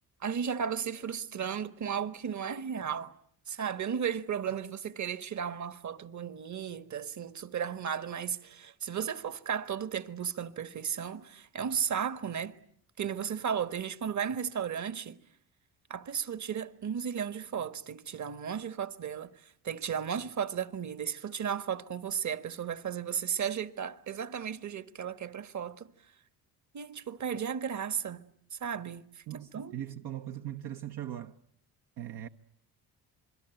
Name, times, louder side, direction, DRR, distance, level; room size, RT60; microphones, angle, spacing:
voice 1, 0.2-3.1 3.5-12.6 13.0-15.2 15.9-19.3 19.6-25.9 26.7-28.2 28.5-29.8, right 8 dB, 45° right, 1.6 m, -34 dB
voice 2, 29.3-31.4 32.0-32.3, right 11 dB, 65° right, 1.1 m, -40 dB
27.5 x 22.0 x 9.2 m
supercardioid pair, 80°, 40 cm